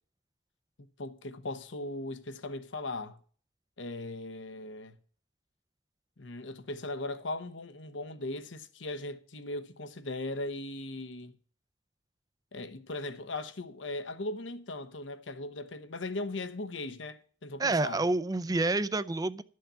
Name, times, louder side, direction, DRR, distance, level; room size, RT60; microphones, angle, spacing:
voice 1, 1.0-3.2 3.8-4.9 6.2-11.3 12.5-18.0, left 2 dB, 80° left, 1.0 m, -38 dB
voice 2, 17.6-19.4, right 2 dB, 20° right, 0.5 m, -28 dB
11.5 x 6.6 x 6.8 m
head